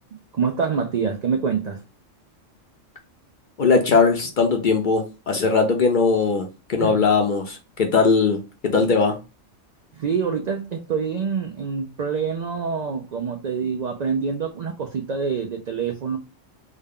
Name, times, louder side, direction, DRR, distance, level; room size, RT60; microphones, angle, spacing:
voice 1, 0.3-1.8 6.8-7.0 9.9-16.2, right 6 dB, 70° right, 0.4 m, -26 dB
voice 2, 3.6-9.2, left 4 dB, 55° left, 0.6 m, -20 dB
3.6 x 2.1 x 3.6 m
omnidirectional pair, 1.3 m